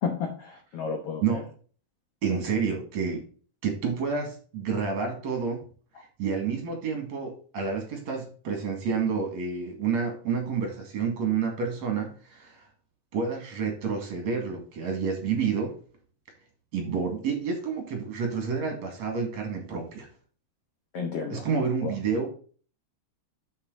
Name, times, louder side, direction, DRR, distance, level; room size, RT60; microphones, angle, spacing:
voice 1, 0.0-1.4 20.9-21.4 21.8-21.9, left 5 dB, 80° left, 4 dB, 1.3 m, -32 dB
voice 2, 2.2-3.2 3.6-5.6 6.2-12.6 13.1-15.8 16.7-20.1 21.3-22.3, right 5 dB, 50° right, 3 dB, 2.9 m, -29 dB
7.2 x 6.9 x 3.9 m, 0.40 s
omnidirectional pair, 4.4 m